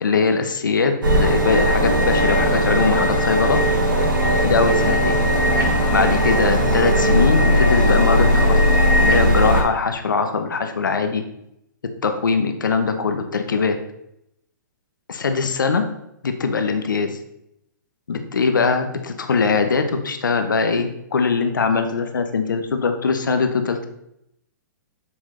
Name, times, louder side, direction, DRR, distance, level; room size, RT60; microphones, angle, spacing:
voice 1, 0.0-3.6 4.4-5.2 5.9-8.6 8.9-11.2 12.0-13.8 15.1-15.8 16.2-17.2 18.1-23.9, left 4 dB, 80° left, 7 dB, 1.0 m, -21 dB
sound 1, 1.0-9.6, equal, 85° right, 2.5 m, -18 dB
7.6 x 6.1 x 3.3 m, 0.79 s
hypercardioid pair, 125°, 11 cm